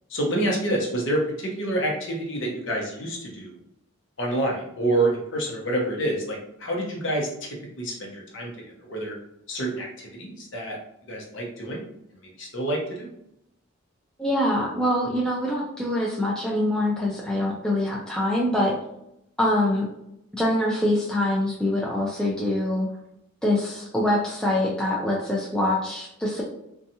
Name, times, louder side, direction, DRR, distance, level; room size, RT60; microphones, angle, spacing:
voice 1, 0.1-3.5 4.2-7.5 7.8-8.5 8.8-9.2 9.5-10.8 11.1-11.9 12.4-13.1, right 1 dB, 60° left, -1 dB, 0.7 m, -27 dB
voice 2, 14.2-18.8 19.4-19.9 20.3-22.9 23.4-26.4, left 1 dB, 5° left, -4 dB, 0.3 m, -24 dB
2.7 x 2.3 x 2.7 m, 0.79 s
head